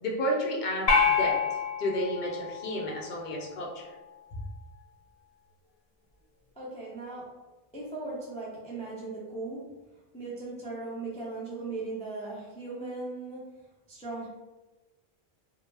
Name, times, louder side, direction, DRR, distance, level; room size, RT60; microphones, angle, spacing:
voice 1, 0.0-1.4 1.8-3.9, equal, 60° left, -1 dB, 0.6 m, -31 dB
sound 1, 0.9-3.4, left 5 dB, 85° left, 0.9 m, -27 dB
voice 2, 6.6-7.3 7.7-9.6 10.1-13.4 13.9-14.3, right 3 dB, 10° left, -6 dB, 0.3 m, -38 dB
2.1 x 2.0 x 3.2 m, 1.1 s
omnidirectional pair, 1.0 m